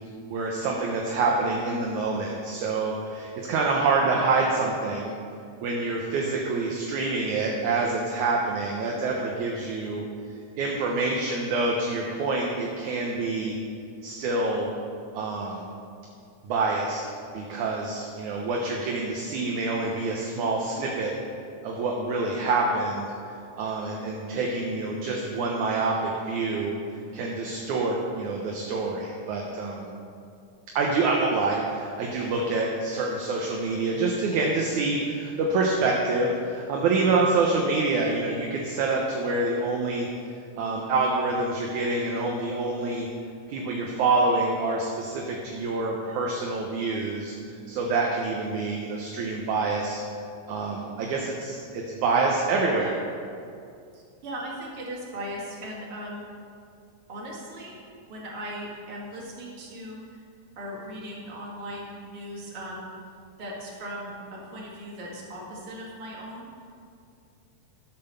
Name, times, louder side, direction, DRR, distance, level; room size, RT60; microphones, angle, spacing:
voice 1, 0.3-5.1 5.6-10.0 10.6-13.5 14.0-14.7 15.1-15.6 16.4-17.0 17.3-21.1 21.6-23.1 23.6-26.8 27.1-29.9 30.8-40.1 40.6-43.1 43.5-47.3 47.7-50.0 50.5-53.0, right 3 dB, 70° right, -1 dB, 2.2 m, -26 dB
voice 2, 53.9-56.2 57.1-57.8 58.1-60.2 60.6-62.9 63.4-66.5, equal, 45° right, -4 dB, 2.9 m, -38 dB
11.0 x 7.8 x 6.8 m, 2.4 s
omnidirectional pair, 4.1 m